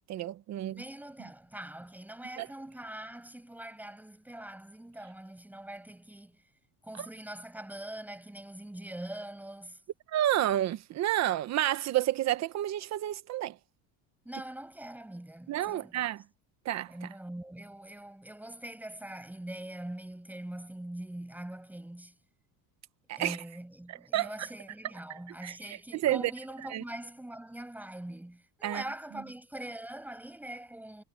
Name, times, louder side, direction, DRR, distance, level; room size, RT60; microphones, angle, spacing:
voice 1, 0.1-0.8 2.4-2.5 7.0-7.1 10.1-13.6 15.5-16.2 16.6-16.9 23.1-23.4 23.9-24.3 25.4-26.3 26.7-26.8 28.6-28.8, right 13 dB, 35° right, 1.0 m, -30 dB
voice 2, 0.7-6.5 6.8-9.8 14.3-16.1 16.9-22.2 23.2-31.0, right 1 dB, 5° right, 6.9 m, -43 dB
cardioid pair, 170°, 44 cm